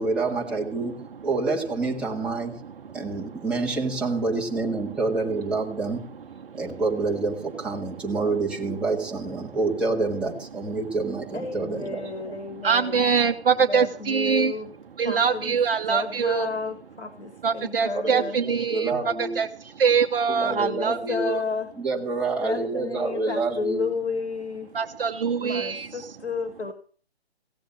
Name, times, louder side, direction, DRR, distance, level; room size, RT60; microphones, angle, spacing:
voice 1, 0.0-2.6 2.9-6.1 6.5-12.3 17.9-19.4 20.3-21.3 21.7-23.9, right 3 dB, 5° right, -4 dB, 1.8 m, -28 dB
voice 2, 11.3-13.1 13.7-14.7 15.0-15.5 15.9-18.4 18.9-19.0 20.4-21.7 22.4-24.7 25.4-26.7, left 4 dB, 80° left, 8 dB, 1.8 m, -32 dB
voice 3, 12.4-14.6 15.0-16.5 17.4-21.4 24.7-26.2, right 6 dB, 60° right, 7 dB, 1.0 m, -24 dB
16.5 x 7.6 x 7.5 m, 0.44 s
figure-of-eight pair, 150°, 33 cm